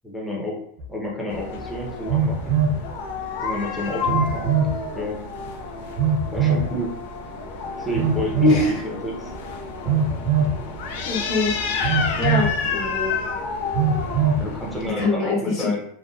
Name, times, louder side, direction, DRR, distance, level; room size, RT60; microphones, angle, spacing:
voice 1, 0.0-0.6 0.9-2.6 3.4-5.2 6.3-6.9 7.8-8.6 8.8-9.3 9.8-9.9 14.4-15.8, left 1 dB, 5° left, -3 dB, 0.7 m, -30 dB
Telephone, 0.8-0.9 2.1-2.8 4.1-4.8 6.0-6.7 7.9-8.6 9.8-10.6 11.8-12.5 13.7-14.5, right 5 dB, 55° right, 0.4 m, -21 dB
sound 1, 1.3-14.9, left 5 dB, 65° left, 0.4 m, -30 dB
voice 2, 8.4-8.7 11.0-11.5 12.2-13.1 15.0-15.7, left 3 dB, 45° left, -3 dB, 1.1 m, -23 dB
2.7 x 2.2 x 2.3 m, 0.73 s
supercardioid pair, 135°, 0 cm